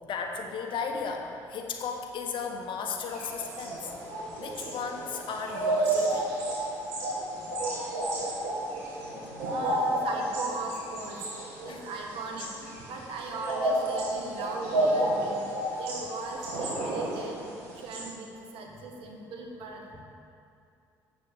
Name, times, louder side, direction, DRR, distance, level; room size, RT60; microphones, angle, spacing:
voice 1, 0.0-3.9 4.4-6.3 7.3-7.5 11.7-11.8 12.4-12.5 18.7-18.8 19.9-20.0, left 5 dB, 55° left, 3 dB, 1.3 m, -35 dB
sound 1, 3.1-18.1, right 1 dB, 85° right, 2.2 m, -31 dB
voice 2, 9.4-11.2 11.6-15.4 15.7-17.5 17.7-19.8, right 3 dB, 65° right, 1 dB, 1.6 m, -38 dB
8.3 x 6.7 x 7.2 m, 2.5 s
hypercardioid pair, 60°, 10 cm